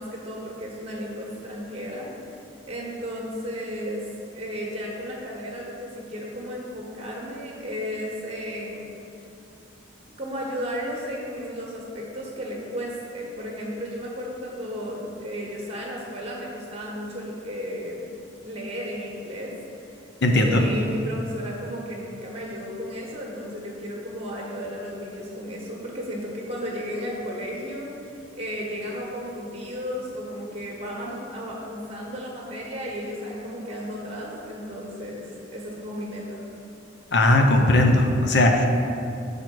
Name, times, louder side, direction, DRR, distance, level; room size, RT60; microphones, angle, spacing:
voice 1, 0.0-2.1 2.7-4.0 4.3-8.9 10.2-18.1 18.4-19.5 20.3-27.9 28.4-36.4, equal, 30° right, -3 dB, 1.3 m, -34 dB
voice 2, 20.2-20.7 37.1-38.7, left 1 dB, 60° left, 3 dB, 0.6 m, -18 dB
5.2 x 4.5 x 6.0 m, 2.6 s
head